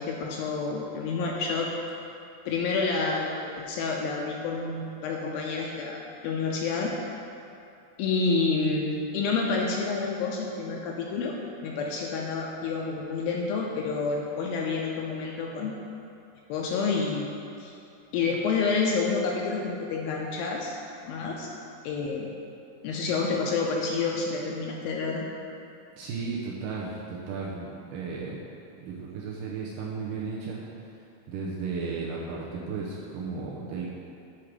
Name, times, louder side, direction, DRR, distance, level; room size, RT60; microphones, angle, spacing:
voice 1, 0.0-1.7 2.5-6.9 8.0-11.4 11.6-15.8 16.5-17.3 17.6-17.7 18.1-20.7 21.0-21.5 21.8-22.3 22.8-25.2, left 4 dB, 80° left, -1 dB, 2.2 m, -29 dB
voice 2, 26.0-28.4 28.8-30.6 31.3-33.9, right 4 dB, 75° right, -5 dB, 2.0 m, -34 dB
8.5 x 4.6 x 5.0 m, 2.7 s
omnidirectional pair, 4.6 m